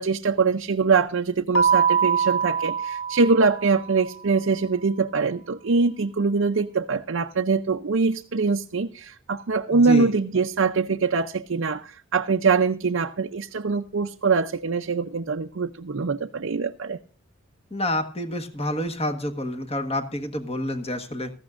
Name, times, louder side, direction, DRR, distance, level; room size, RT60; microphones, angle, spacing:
voice 1, 0.0-17.0, right 4 dB, 65° right, 4 dB, 0.6 m, -23 dB
Keyboard (musical), 1.5-4.1, right 6 dB, 65° left, 3.0 m, -23 dB
voice 2, 9.7-10.1 17.7-21.3, left 1 dB, 25° left, 6 dB, 1.4 m, -28 dB
17.5 x 14.5 x 2.5 m, 0.43 s
head